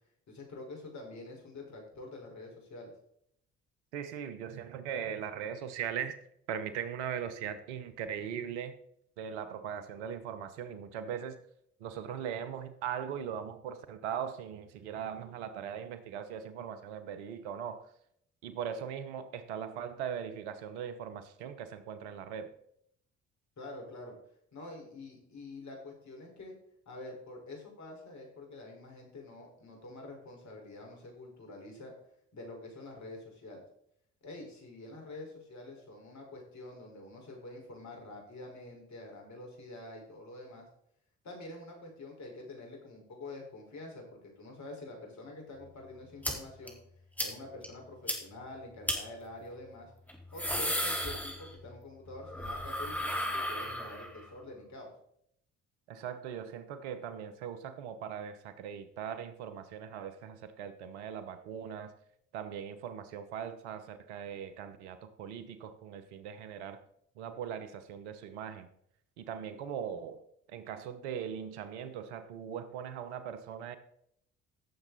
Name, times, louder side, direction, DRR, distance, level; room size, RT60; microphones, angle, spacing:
voice 1, 0.3-2.9 23.6-24.2 24.5-26.6 26.8-31.9 32.3-33.6 34.2-40.6 41.2-46.8 47.2-49.9 50.3-54.9, left 2 dB, 55° left, 1 dB, 4.9 m, -47 dB
voice 2, 3.9-6.2 6.5-8.7 9.2-11.4 11.8-17.9 18.4-22.5 55.9-61.9 62.3-66.8 67.2-68.7 69.2-70.2 70.5-73.8, right 8 dB, 85° right, 10 dB, 1.1 m, -40 dB
sound 1, 46.2-46.3 46.7-46.8 47.2-47.3 47.6-47.7 48.1-48.2 48.9-49.0 50.1-51.8 52.1-54.2, equal, 5° left, 4.0 m, -34 dB
16.0 x 7.3 x 4.1 m, 0.71 s
hypercardioid pair, 50°, 33 cm